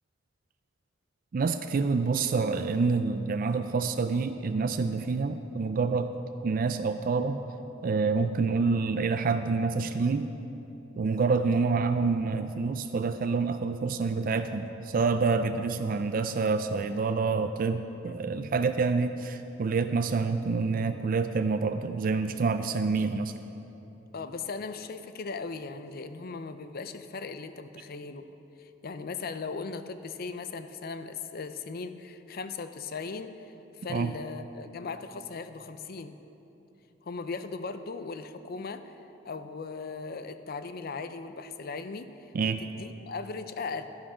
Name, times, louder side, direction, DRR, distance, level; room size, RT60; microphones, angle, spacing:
voice 1, 1.3-6.1 6.4-7.4 7.8-10.3 11.0-23.3 33.9-34.1 42.3-42.6, right 4 dB, 50° right, 8 dB, 0.4 m, -27 dB
voice 2, 24.1-28.3 28.6-33.5 33.8-36.2 37.0-38.9 39.2-42.3 42.6-43.9, left 4 dB, 55° left, 10 dB, 0.5 m, -38 dB
11.5 x 11.0 x 5.0 m, 3.0 s
head